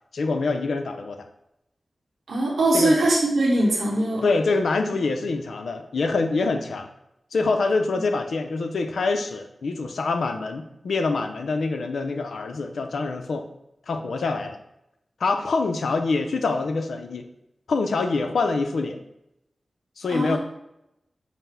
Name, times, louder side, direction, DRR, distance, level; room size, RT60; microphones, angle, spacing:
voice 1, 0.1-1.2 2.7-3.0 4.2-6.9 7.3-13.5 13.9-14.6 15.2-17.3 17.7-19.0 20.0-20.4, left 3 dB, 85° left, 6 dB, 0.4 m, -25 dB
voice 2, 2.3-4.2 20.1-20.4, right 1 dB, 85° right, -3 dB, 1.1 m, -21 dB
5.7 x 2.0 x 4.3 m, 0.83 s
cardioid pair, 45°, 0 cm